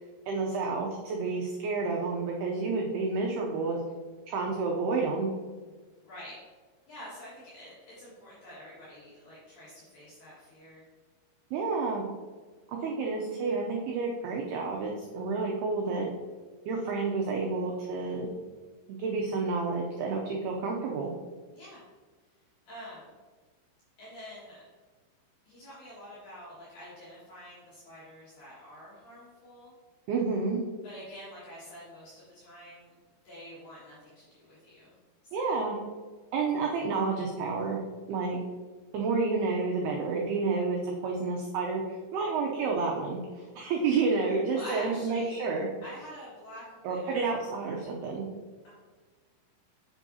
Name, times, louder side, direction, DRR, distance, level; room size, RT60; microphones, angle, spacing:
voice 1, 0.3-3.8 4.3-5.3 11.5-12.0 12.7-16.1 16.7-18.3 18.9-21.1 30.1-30.6 35.3-35.8 36.3-37.8 38.1-38.4 38.9-45.7 46.8-48.3, right 4 dB, 85° right, -1 dB, 2.3 m, -30 dB
voice 2, 6.0-6.4 6.9-10.8 21.5-21.8 22.7-23.2 24.0-24.6 25.4-29.7 30.8-32.9 33.2-35.0 35.4-35.5 44.5-45.4 45.8-47.5 48.6-48.7, equal, 55° left, -10 dB, 3.2 m, -47 dB
7.7 x 7.2 x 2.8 m, 1.4 s
omnidirectional pair, 5.4 m